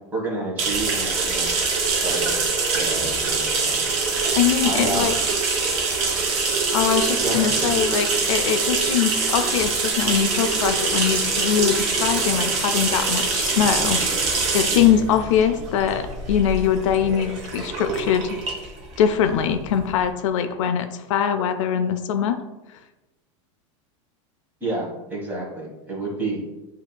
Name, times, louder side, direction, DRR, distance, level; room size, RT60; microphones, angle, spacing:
voice 1, 0.1-1.5 2.0-2.4 2.7-3.8 4.6-5.1 7.2-7.5 24.6-26.4, right 2 dB, 10° right, -4 dB, 1.3 m, -29 dB
sound 1, 0.6-20.0, right 4 dB, 40° right, 0.8 m, -24 dB
voice 2, 4.3-5.1 6.7-14.0 14.5-18.4 19.0-22.4, left 8 dB, 80° left, 8 dB, 0.4 m, -22 dB
7.0 x 2.8 x 2.2 m, 1.0 s
supercardioid pair, 160°, 16 cm